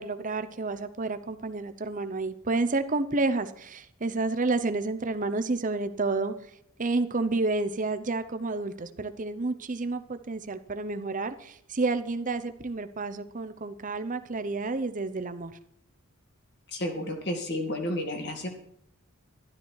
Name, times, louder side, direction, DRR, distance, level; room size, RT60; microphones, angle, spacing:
voice 1, 0.0-6.3 6.8-15.6, right 3 dB, 35° right, 10 dB, 0.8 m, -30 dB
voice 2, 16.7-18.5, left 1 dB, 50° left, 3 dB, 2.3 m, -31 dB
12.5 x 12.0 x 4.7 m, 0.70 s
head